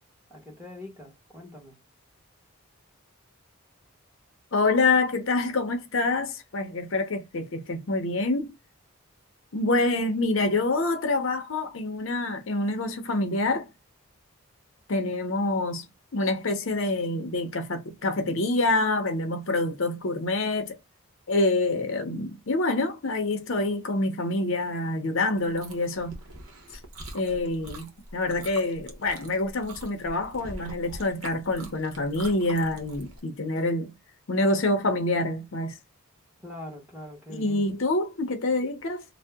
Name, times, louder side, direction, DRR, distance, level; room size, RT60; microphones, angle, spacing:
voice 1, 0.3-1.8 36.4-37.6, left 1 dB, 10° right, 1.2 m, -42 dB
voice 2, 4.5-8.5 9.5-13.7 14.9-15.8 16.1-20.7 21.3-26.2 27.1-33.9 34.3-35.8 37.3-39.0, left 2 dB, 60° left, 0.6 m, -26 dB
Chewing mastication, 25.3-33.2, right 1 dB, 70° right, 0.9 m, -44 dB
2.7 x 2.1 x 3.4 m
head